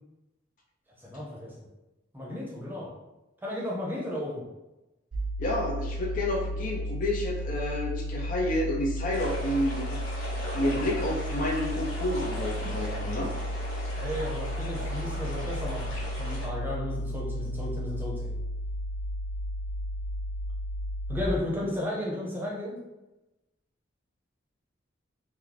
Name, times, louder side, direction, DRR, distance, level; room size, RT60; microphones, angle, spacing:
voice 1, 1.0-1.7 2.1-2.9 3.4-4.4 14.0-18.3 21.1-22.8, left 1 dB, 10° right, -4 dB, 0.7 m, -34 dB
sound 1, 5.1-21.3, equal, 45° right, 0.5 m, -33 dB
voice 2, 5.4-10.0 10.5-13.3, left 1 dB, 45° left, 0 dB, 0.4 m, -30 dB
sound 2, 9.1-16.5, equal, 75° left, 1.1 m, -39 dB
3.1 x 2.1 x 3.8 m, 1.0 s
head